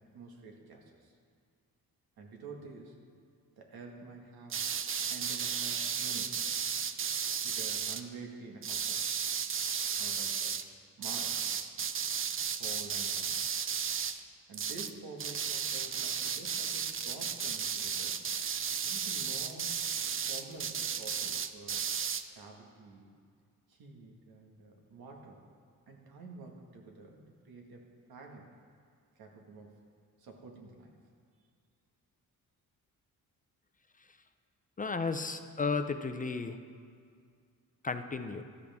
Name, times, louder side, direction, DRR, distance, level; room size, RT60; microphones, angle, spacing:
voice 1, 0.1-1.1 2.2-3.0 3.6-4.6 5.1-6.4 7.4-9.1 10.0-10.6 11.0-11.5 12.5-13.3 14.5-18.2 18.8-19.8 20.2-21.9 22.3-23.1 23.7-25.5 25.9-28.5 29.2-29.8 30.2-30.9, right 3 dB, 85° right, 1 dB, 1.9 m, -49 dB
sound 1, 4.5-8.0 8.6-10.6 11.0-14.2 14.5-14.9 15.2-22.2, right 7 dB, 35° right, 0.5 m, -34 dB
voice 2, 34.8-36.6 37.8-38.4, left 4 dB, 25° left, 8 dB, 0.5 m, -33 dB
13.5 x 13.0 x 3.6 m, 2.2 s
cardioid pair, 125°, 35 cm